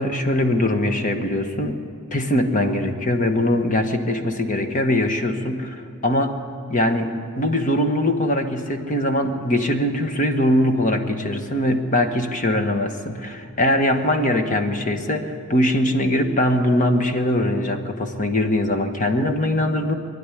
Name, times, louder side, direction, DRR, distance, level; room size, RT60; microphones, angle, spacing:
voice 1, 0.0-1.8 2.1-6.4 6.7-19.9, left 1 dB, 35° left, 6 dB, 1.4 m, -21 dB
23.5 x 11.5 x 10.0 m, 2.4 s
head